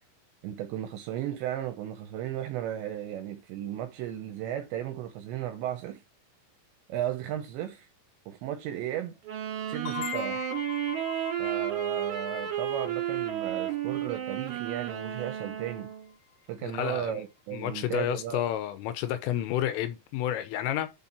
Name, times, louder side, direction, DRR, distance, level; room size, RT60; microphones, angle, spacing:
voice 1, 0.4-6.0 6.9-7.9 8.3-9.2 9.7-10.5 11.4-15.9 16.5-18.4, right 11 dB, 80° right, 2.6 m, -35 dB
Wind instrument woodwind instrument, 9.2-16.1, right 11 dB, 65° right, 2.1 m, -32 dB
sound 1, 9.9-15.3, left 12 dB, 65° left, 6.7 m, -42 dB
voice 2, 16.6-17.1 17.5-20.9, left 11 dB, 80° left, 3.4 m, -30 dB
11.5 x 3.9 x 4.3 m
omnidirectional pair, 6.0 m